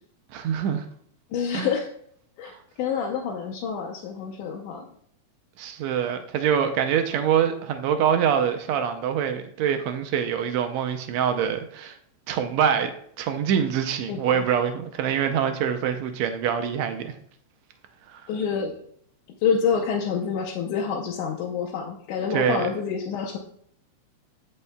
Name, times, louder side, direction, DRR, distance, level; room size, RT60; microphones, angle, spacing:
voice 1, 0.3-0.9 1.5-1.7 2.4-2.6 5.6-12.0 12.3-17.1 18.1-18.2 22.3-22.7, right 8 dB, 80° right, 7 dB, 1.6 m, -25 dB
voice 2, 1.3-1.9 2.4-2.5 2.8-4.9 14.1-14.4 18.3-18.8 19.4-23.4, left 6 dB, 85° left, 0 dB, 2.2 m, -27 dB
13.5 x 5.4 x 2.2 m, 0.66 s
omnidirectional pair, 3.5 m